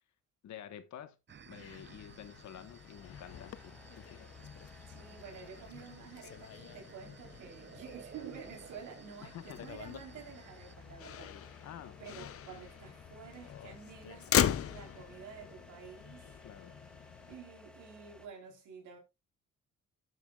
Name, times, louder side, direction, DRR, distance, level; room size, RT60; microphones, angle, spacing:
voice 1, 0.4-1.2 1.4-4.2 9.2-9.7 11.6-12.0 16.4-16.8, left 10 dB, 70° left, 1.3 m, -49 dB
sound 1, 1.3-10.7, right 7 dB, 40° right, 0.7 m, -56 dB
Motor vehicle (road), 1.5-17.4, left 10 dB, 50° left, 0.6 m, -40 dB
sound 2, 1.7-18.3, left 2 dB, 5° left, 1.4 m, -58 dB
voice 2, 4.9-11.7 12.0-16.4 17.3-19.0, right 6 dB, 80° right, 3.8 m, -50 dB
12.5 x 7.3 x 2.4 m
cardioid pair, 90°, 30 cm